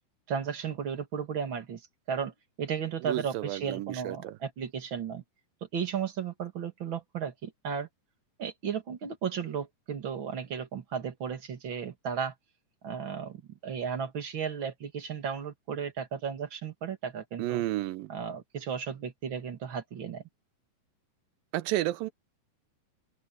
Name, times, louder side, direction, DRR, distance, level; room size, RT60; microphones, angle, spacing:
voice 1, 0.3-1.8 2.1-2.3 2.6-5.2 5.7-7.9 8.4-12.3 12.8-17.6 18.1-20.2, right 7 dB, 40° right, 2.4 m, -34 dB
voice 2, 3.0-4.4 17.4-18.1 21.5-22.1, right 15 dB, 85° right, 2.5 m, -31 dB
open air
omnidirectional pair, 4.0 m